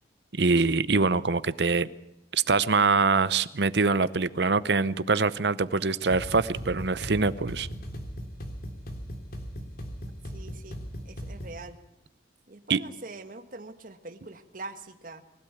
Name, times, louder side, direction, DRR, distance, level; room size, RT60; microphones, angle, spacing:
voice 1, 0.4-1.9 2.3-7.7 12.7-12.8, right 4 dB, 65° right, 0.8 m, -24 dB
sound 1, 6.1-11.6, equal, 55° left, 3.5 m, -39 dB
voice 2, 10.3-10.8 11.0-11.8 12.5-15.2, right 3 dB, 50° right, 1.6 m, -43 dB
24.0 x 16.0 x 8.5 m
head